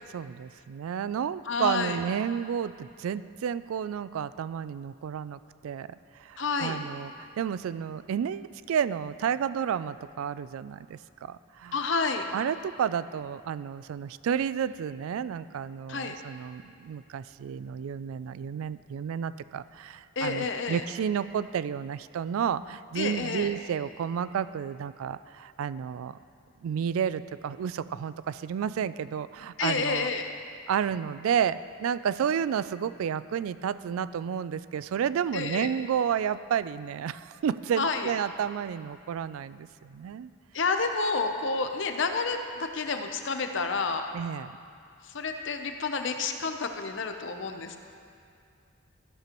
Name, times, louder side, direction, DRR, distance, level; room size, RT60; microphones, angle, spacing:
voice 1, 0.1-5.9 6.2-11.8 12.3-26.2 26.6-30.1 30.7-40.3 44.1-44.5, right 8 dB, 85° right, 16 dB, 0.3 m, -31 dB
voice 2, 1.5-2.0 6.4-6.8 11.7-12.3 15.9-16.2 20.2-20.8 23.0-23.5 29.6-30.3 35.3-35.7 37.8-38.1 40.5-44.1 45.1-47.8, left 4 dB, 60° left, 6 dB, 0.7 m, -29 dB
13.5 x 12.0 x 3.0 m, 2.4 s
head